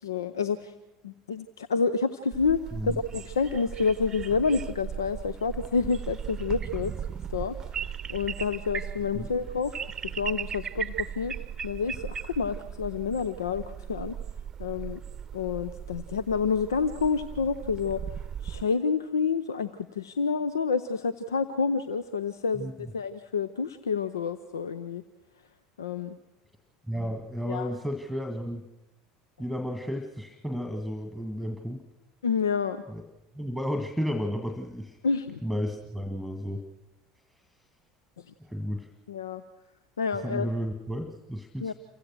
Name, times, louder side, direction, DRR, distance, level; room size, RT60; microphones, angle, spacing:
voice 1, 0.0-0.7 1.0-6.9 7.3-11.4 11.6-14.2 14.6-15.0 15.3-18.0 18.4-25.0 25.8-26.2 27.5-27.7 32.2-32.8 35.0-35.4 38.2-38.3 39.1-39.4 40.0-40.5 41.6-41.7, left 5 dB, 75° left, 15 dB, 0.7 m, -29 dB
sound 1, 2.3-18.6, right 8 dB, 30° right, 0.8 m, -37 dB
voice 2, 22.6-22.9 26.9-28.6 29.4-31.8 32.9-33.0 33.3-35.0 35.4-36.6 38.4-38.9 40.2-41.7, equal, 5° left, 5 dB, 1.8 m, -33 dB
28.0 x 16.0 x 6.3 m, 0.98 s
figure-of-eight pair, 70°, 2 cm